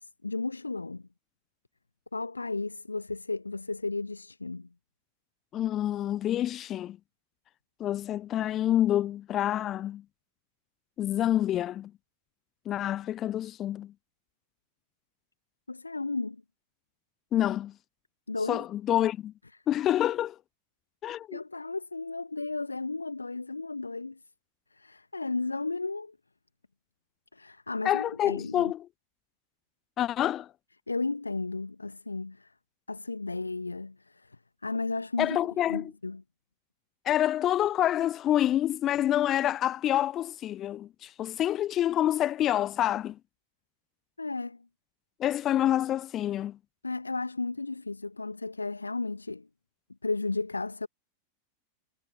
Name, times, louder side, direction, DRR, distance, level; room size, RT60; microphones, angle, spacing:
voice 1, 0.0-1.0 2.1-4.7 15.7-16.4 18.3-18.6 21.3-24.2 24.7-26.2 27.3-28.7 30.9-32.5 32.9-34.4 34.6-35.4 35.7-36.2 44.2-44.6 46.8-49.5 50.0-50.9, left 3 dB, 80° left, 1.5 m, -34 dB
voice 2, 5.5-7.0 7.8-10.0 11.0-11.9 12.7-13.9 17.3-17.7 18.5-19.3 19.7-20.4 21.0-21.4 27.8-28.9 30.0-30.5 35.2-35.9 37.0-43.2 45.2-46.6, left 12 dB, 30° left, 0.6 m, -27 dB
figure-of-eight pair, 90°, 0 cm